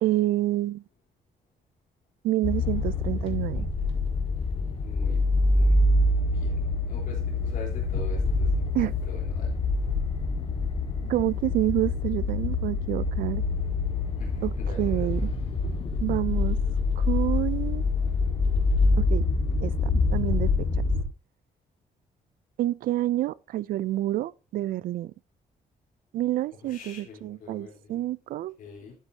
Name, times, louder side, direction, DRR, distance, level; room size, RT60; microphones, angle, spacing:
voice 1, 0.0-0.8 2.2-3.7 8.7-9.0 11.1-13.4 14.4-14.5 14.8-15.3 16.0-16.6 17.0-17.9 19.0-19.2 19.6-20.5 22.6-25.1 26.1-28.5, right 15 dB, 70° right, 0.4 m, -28 dB
sound 1, 2.4-21.0, left 3 dB, 40° left, 1.8 m, -26 dB
voice 2, 4.8-5.2 5.5-5.8 6.3-6.6 6.9-8.7 9.0-9.5 14.2-15.2 26.6-28.0 28.6-29.0, left 4 dB, 65° left, 4.0 m, -44 dB
12.0 x 8.3 x 2.9 m
cardioid pair, 175°, 15 cm